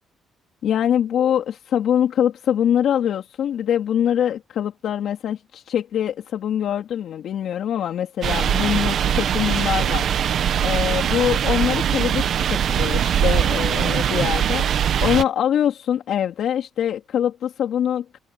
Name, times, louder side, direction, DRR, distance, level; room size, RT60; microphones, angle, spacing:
voice 1, 0.6-10.1 10.6-18.2, left 9 dB, 70° left, 3.3 m, -23 dB
sound 1, 8.2-15.2, right 9 dB, 65° right, 1.3 m, -21 dB
cardioid pair, 90°, 0 cm